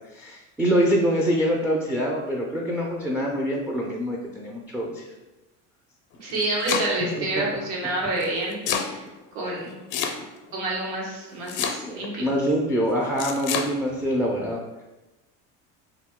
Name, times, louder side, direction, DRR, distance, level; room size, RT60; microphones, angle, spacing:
voice 1, 0.1-5.0 7.2-7.4 11.8-14.6, equal, 5° right, -2 dB, 0.3 m, -25 dB
Domestic sounds home sounds, 6.1-7.2 8.2-8.9 9.9-10.5 11.5-12.1 13.2-13.7, left 7 dB, 60° left, 0.6 m, -28 dB
voice 2, 6.2-8.6 8.9-9.0 9.3-9.7 10.5-12.3, right 2 dB, 85° right, -3 dB, 1.2 m, -28 dB
2.9 x 2.6 x 3.5 m, 1.1 s
supercardioid pair, 110°, 34 cm